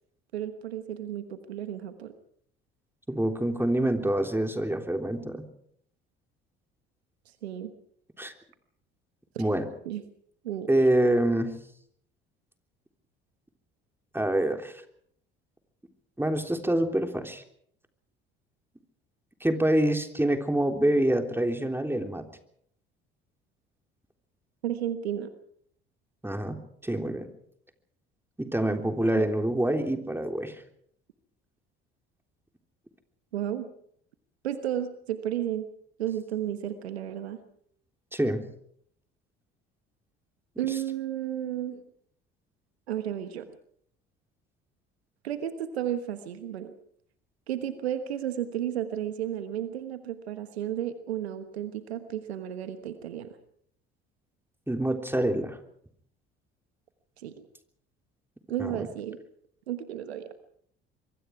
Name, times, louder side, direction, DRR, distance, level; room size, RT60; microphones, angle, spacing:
voice 1, 0.3-2.1 7.4-7.7 9.3-9.5 9.8-10.0 10.4-10.9 24.6-25.3 29.2-29.3 33.3-33.7 34.4-35.7 36.0-37.4 40.6-41.8 42.9-43.4 45.2-46.7 47.5-53.4 57.2-57.4 58.5-59.2 59.7-60.5, right 11 dB, 90° right, 9 dB, 1.3 m, -33 dB
voice 2, 3.1-5.5 8.2-8.3 9.4-9.7 10.7-11.5 14.1-14.7 16.2-17.4 19.4-22.2 26.2-27.3 28.4-30.5 38.1-38.4 54.7-55.6 58.6-58.9, right 1 dB, 5° right, 5 dB, 3.5 m, -26 dB
25.5 x 23.0 x 4.8 m, 0.66 s
hypercardioid pair, 60°, 31 cm